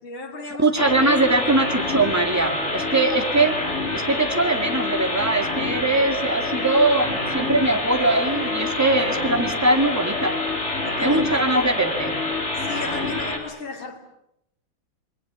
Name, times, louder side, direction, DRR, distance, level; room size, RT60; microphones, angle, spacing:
voice 1, 0.0-0.8 3.0-3.3 10.8-11.7 12.6-14.0, left 3 dB, 70° left, 3 dB, 3.6 m, -35 dB
voice 2, 0.6-3.5 3.9-10.4 11.0-12.2, right 2 dB, 10° right, 6 dB, 1.7 m, -21 dB
sound 1, 0.8-13.4, left 2 dB, 30° left, 3.7 m, -27 dB
sound 2, 1.1-4.8 7.0-9.3, right 4 dB, 60° right, 3.7 m, -41 dB
27.5 x 21.5 x 8.0 m, 0.81 s
omnidirectional pair, 2.3 m